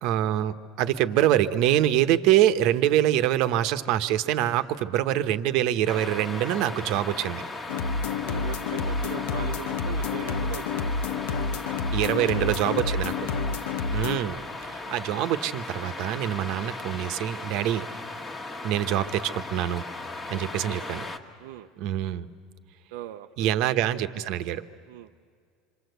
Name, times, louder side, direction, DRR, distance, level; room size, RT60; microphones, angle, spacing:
voice 1, 0.0-7.4 11.9-13.1 13.9-14.4 14.7-17.9 18.6-19.8 20.3-21.0 21.8-22.3 23.4-24.6, right 12 dB, 55° right, 11 dB, 1.0 m, -25 dB
sound 1, 5.9-21.2, left 2 dB, 15° left, 1.4 m, -37 dB
sound 2, 7.7-14.2, left 4 dB, 85° left, 1.0 m, -29 dB
voice 2, 8.2-10.9 12.1-12.3 12.7-13.0 13.4-13.6 14.8-14.9 20.4-20.9 21.4-21.7 22.9-23.7 24.9-25.1, right 12 dB, 90° right, 5 dB, 0.7 m, -40 dB
27.5 x 25.5 x 8.1 m, 2.1 s
cardioid pair, 160°, 0 cm